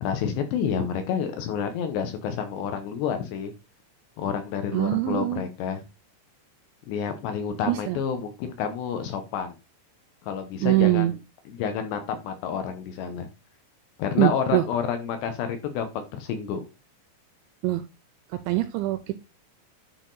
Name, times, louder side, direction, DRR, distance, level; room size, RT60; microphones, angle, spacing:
voice 1, 0.0-3.5 4.2-5.8 6.9-9.5 10.3-11.1 11.5-13.3 14.0-16.7, left 7 dB, 75° left, 7 dB, 2.8 m, -29 dB
voice 2, 4.7-5.4 7.7-8.0 10.6-11.1 14.2-14.6 17.6-17.8 18.5-19.2, right 16 dB, 85° right, 10 dB, 2.7 m, -23 dB
10.5 x 4.3 x 3.9 m, 0.26 s
omnidirectional pair, 5.7 m